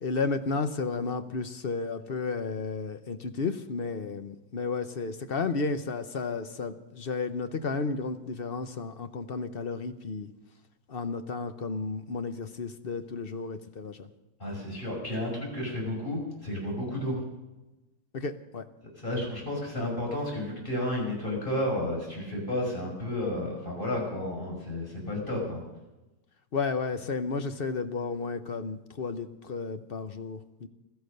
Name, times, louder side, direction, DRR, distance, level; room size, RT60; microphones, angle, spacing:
voice 1, 0.0-10.3 10.9-14.1 18.1-18.7 26.5-30.7, left 4 dB, 45° left, 9 dB, 0.8 m, -32 dB
voice 2, 14.4-17.2 19.0-25.6, left 1 dB, 30° left, -2 dB, 5.9 m, -32 dB
16.0 x 13.5 x 6.6 m, 1.0 s
omnidirectional pair, 1.9 m